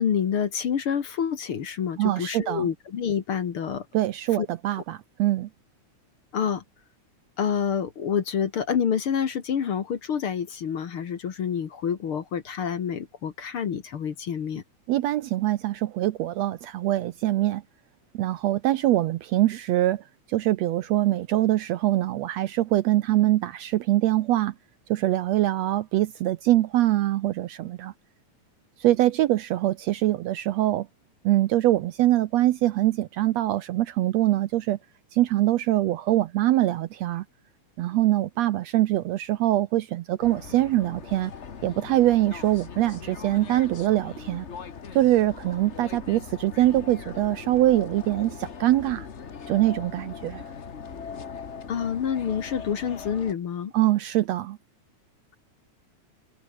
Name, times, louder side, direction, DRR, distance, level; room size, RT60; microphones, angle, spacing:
voice 1, 0.0-3.9 4.4-4.5 6.3-6.6 7.4-14.6 51.7-53.7, left 7 dB, 50° left, 2.1 m, -27 dB
voice 2, 2.0-2.7 3.9-5.5 14.9-17.6 18.1-24.5 24.9-27.9 28.8-30.9 31.2-34.8 35.1-37.2 37.8-41.3 41.6-44.5 44.9-49.1 49.5-50.4 53.7-54.6, right 15 dB, 70° right, 1.7 m, -23 dB
sound 1, 40.2-53.3, left 6 dB, 90° left, 0.6 m, -40 dB
omnidirectional pair, 3.5 m